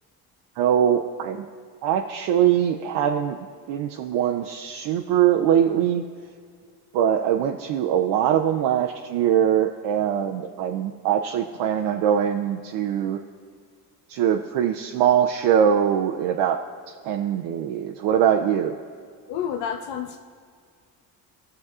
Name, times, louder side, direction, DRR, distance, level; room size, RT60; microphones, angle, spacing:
voice 1, 0.6-1.4 1.8-3.4 3.7-6.0 6.9-13.2 14.1-16.6 16.9-18.8, right 9 dB, 65° right, 3 dB, 0.6 m, -22 dB
voice 2, 19.3-20.2, left 8 dB, 65° left, 5 dB, 0.7 m, -29 dB
18.0 x 6.3 x 2.4 m, 2.1 s
supercardioid pair, 95°, 45 cm